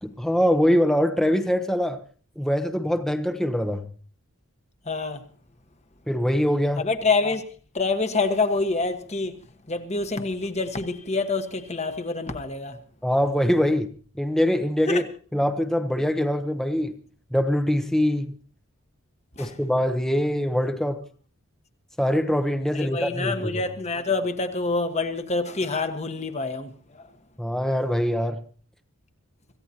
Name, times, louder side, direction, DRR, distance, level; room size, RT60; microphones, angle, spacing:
voice 1, 0.0-2.0 2.4-3.8 6.1-6.8 13.0-13.9 14.2-15.0 15.3-16.9 17.3-18.3 19.4-21.0 22.0-23.6 27.4-28.4, equal, ahead, 0.9 m, -23 dB
voice 2, 4.8-5.2 6.8-7.4 7.7-9.4 9.7-12.8 14.9-15.0 19.4-19.6 22.7-27.1, left 3 dB, 30° left, 1.4 m, -26 dB
25.5 x 16.0 x 2.9 m
head